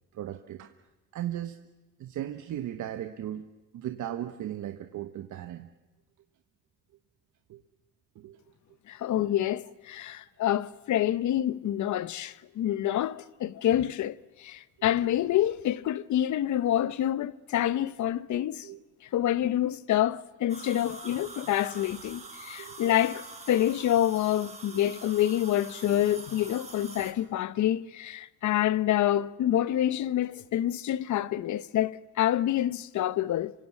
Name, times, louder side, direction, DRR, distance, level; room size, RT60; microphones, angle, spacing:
voice 1, 0.1-0.7 1.1-1.6 2.0-3.5 3.7-5.7 7.5-7.6 8.1-8.4 9.1-9.5 18.6-18.8 22.6-22.9, right 11 dB, 75° right, 1.3 m, -37 dB
voice 2, 8.9-18.7 19.1-33.5, left 12 dB, 75° left, 0.9 m, -27 dB
sound 1, 20.5-27.1, right 3 dB, 20° right, 5.0 m, -45 dB
27.5 x 25.0 x 7.4 m
cardioid pair, 90°, 30 cm